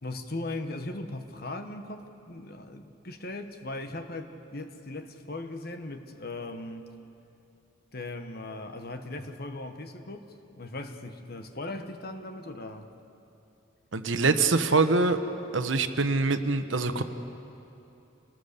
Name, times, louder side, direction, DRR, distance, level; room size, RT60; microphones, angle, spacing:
voice 1, 0.0-6.9 7.9-10.2 10.6-12.9, left 2 dB, 50° left, 7 dB, 1.3 m, -38 dB
voice 2, 13.9-15.2 15.5-17.0, right 3 dB, 80° right, 9 dB, 1.1 m, -24 dB
27.0 x 18.5 x 6.8 m, 2.8 s
head